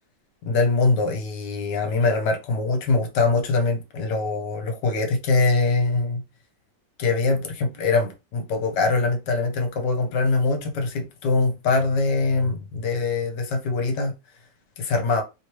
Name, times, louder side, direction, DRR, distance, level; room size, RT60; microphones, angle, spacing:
voice 1, 0.4-6.2 7.0-14.1 14.8-15.2, left 3 dB, 70° left, 1.3 m, -23 dB
3.2 x 3.0 x 2.9 m
omnidirectional pair, 2.1 m